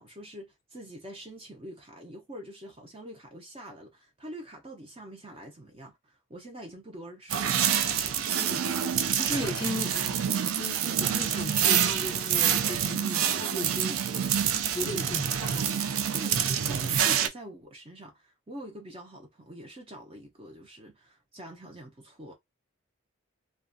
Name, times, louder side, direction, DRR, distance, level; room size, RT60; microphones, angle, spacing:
voice 1, 0.0-7.6 13.9-14.3 14.8-15.2 15.5-15.7 16.1-22.3, right 1 dB, 25° right, 0.5 m, -45 dB
sound 1, 7.3-17.3, right 8 dB, 90° right, 0.4 m, -27 dB
voice 2, 9.1-14.0 14.7-15.8, left 1 dB, 20° left, 0.4 m, -37 dB
2.4 x 2.3 x 2.5 m
head